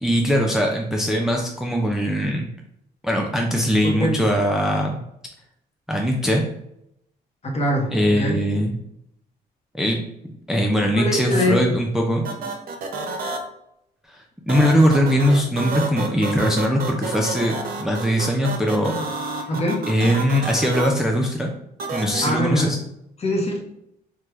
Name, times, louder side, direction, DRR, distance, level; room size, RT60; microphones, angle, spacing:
voice 1, 0.0-2.5 3.0-5.0 5.9-6.4 7.9-8.7 9.7-10.0 10.5-12.2 14.5-19.0 19.9-21.5 21.9-22.8, equal, 5° right, 0 dB, 0.4 m, -21 dB
voice 2, 3.8-4.2 7.5-8.4 11.0-11.6 19.5-19.9 22.2-22.8 23.2-23.7, left 1 dB, 40° left, 1 dB, 0.9 m, -23 dB
sound 1, 11.3-11.4 12.2-13.4 14.5-20.9 21.8-22.3, right 3 dB, 60° right, 0.6 m, -29 dB
3.3 x 2.2 x 3.0 m, 0.78 s
cardioid pair, 80°, 17 cm